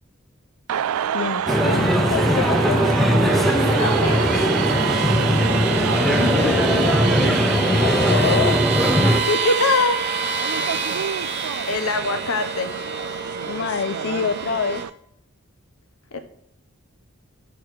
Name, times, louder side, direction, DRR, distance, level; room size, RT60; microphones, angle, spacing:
sound 1, 0.7-14.9, right 9 dB, 90° right, 0.4 m, -28 dB
voice 1, 1.1-2.9 5.1-8.6 13.5-14.8, left 6 dB, 55° left, 10 dB, 0.3 m, -27 dB
sound 2, 1.5-9.2, equal, ahead, 0.6 m, -19 dB
sound 3, 3.3-14.8, right 4 dB, 50° right, 1.1 m, -28 dB
voice 2, 3.7-4.3 9.3-10.0 11.7-12.7 16.1-16.2, left 3 dB, 85° left, 7 dB, 1.1 m, -22 dB
9.7 x 6.3 x 4.7 m, 0.75 s
head